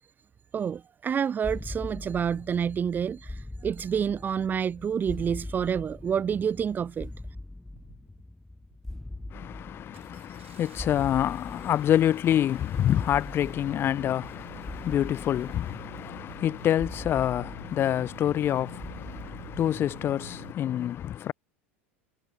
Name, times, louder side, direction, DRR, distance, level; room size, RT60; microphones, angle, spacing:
voice 1, 0.5-7.1, right 7 dB, 25° right, 1.2 m, -28 dB
sound 1, 1.4-20.3, left 1 dB, 5° left, 4.3 m, -42 dB
Engine starting, 4.2-4.3 5.0-5.3 6.0-6.4 6.7-7.2 7.7-8.2 8.6-8.8 9.1-20.5, right 11 dB, 75° right, 3.7 m, -49 dB
voice 2, 9.3-21.3, left 11 dB, 35° left, 0.5 m, -27 dB
figure-of-eight pair, 80°, 7 cm